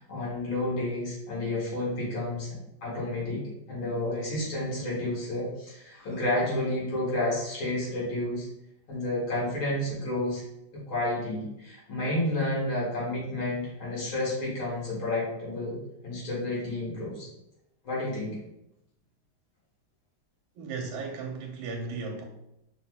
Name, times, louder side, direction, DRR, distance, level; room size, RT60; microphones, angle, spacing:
voice 1, 0.0-3.4 3.7-8.5 8.9-10.4 10.7-15.8 16.0-17.3 17.8-18.4, left 1 dB, 85° left, -6 dB, 2.6 m, -30 dB
voice 2, 20.6-22.2, right 4 dB, 80° right, 2 dB, 1.4 m, -35 dB
5.7 x 2.1 x 3.8 m, 0.84 s
omnidirectional pair, 2.2 m